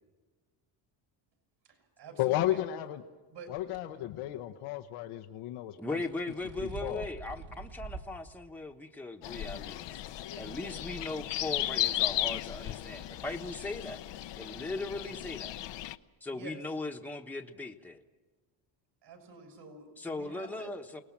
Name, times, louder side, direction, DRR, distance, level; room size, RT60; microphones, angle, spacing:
voice 1, 1.6-2.6 3.3-3.5 16.3-16.6 19.0-20.8, right 3 dB, 55° right, 5 dB, 6.5 m, -49 dB
voice 2, 2.2-3.0 3.5-6.0 6.6-7.0, left 14 dB, 90° left, 5 dB, 1.1 m, -33 dB
sound 1, 3.6-3.8 5.8-8.2 8.6-8.7 9.5-9.6, right 4 dB, 75° right, 5.2 m, -45 dB
voice 3, 5.8-10.0 10.4-14.0 14.4-15.5 16.2-18.0 20.0-21.0, left 2 dB, 5° left, 3 dB, 1.2 m, -38 dB
sound 2, 9.2-16.0, left 13 dB, 60° left, 0.8 m, -35 dB
29.0 x 19.0 x 7.3 m, 1.3 s
cardioid pair, 125°, 50 cm